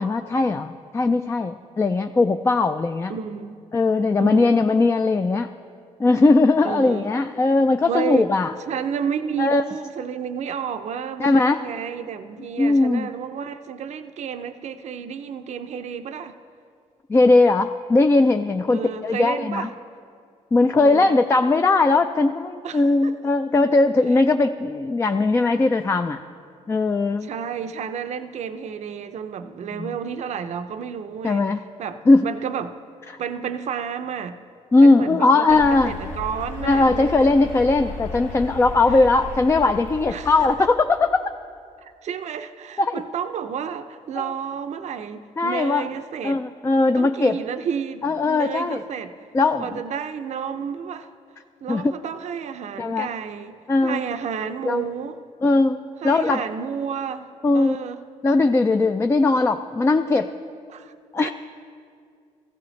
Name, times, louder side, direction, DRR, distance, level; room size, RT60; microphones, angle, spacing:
voice 1, 0.0-3.1 3.7-5.5 6.0-8.5 9.4-9.6 11.2-11.6 12.6-13.1 17.1-19.7 20.5-26.2 26.7-27.3 29.8-29.9 31.2-31.6 32.1-32.3 33.1-33.2 34.7-35.9 36.6-41.3 42.8-43.0 44.2-44.3 45.4-45.9 46.2-47.4 48.0-48.8 49.3-49.8 51.7-51.9 52.8-53.1 53.7-54.0 54.7-54.8 55.4-55.8 56.0-56.4 57.4-57.8 58.2-60.3 61.1-61.3, left 3 dB, 20° left, 7 dB, 0.3 m, -19 dB
voice 2, 3.1-3.6 4.2-4.5 6.6-7.1 7.9-8.3 8.7-16.4 18.7-19.7 20.8-21.2 22.6-23.1 27.2-31.4 31.8-32.8 33.2-34.4 34.8-37.3 40.1-40.7 41.8-46.4 47.0-49.1 49.6-51.1 51.6-55.2 56.0-57.3 57.5-58.0 60.7-60.9 61.2-61.3, right 7 dB, 60° right, 9 dB, 0.5 m, -31 dB
sound 1, 35.5-40.6, left 3 dB, 80° left, 1.0 m, -35 dB
15.0 x 15.0 x 3.2 m, 2.3 s
cardioid pair, 100°, 13 cm